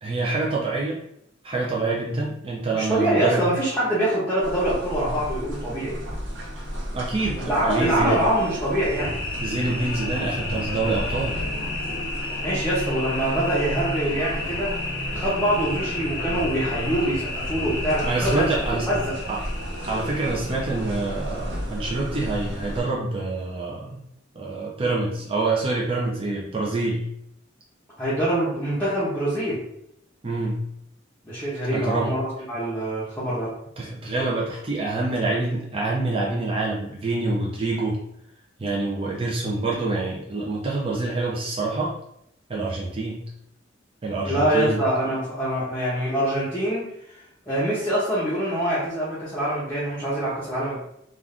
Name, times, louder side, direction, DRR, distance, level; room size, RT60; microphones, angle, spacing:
voice 1, 0.0-1.0 1.4-3.4 6.9-8.2 9.4-11.4 18.0-18.9 19.3-19.4 19.9-24.0 24.3-27.0 30.2-30.6 31.7-32.1 33.8-38.0 38.6-41.9 42.5-43.2 44.0-44.8, right 3 dB, 30° right, -4 dB, 0.5 m, -26 dB
voice 2, 2.7-6.0 7.4-9.2 12.4-14.8 15.1-18.5 18.9-19.2 28.0-29.6 31.2-33.5 44.3-46.8 47.5-50.8, right 1 dB, 10° left, -10 dB, 0.8 m, -24 dB
sound 1, 4.4-22.8, equal, 70° right, 0.8 m, -33 dB
sound 2, 9.0-21.6, left 3 dB, 55° left, 0.6 m, -33 dB
2.5 x 2.4 x 3.4 m, 0.76 s
head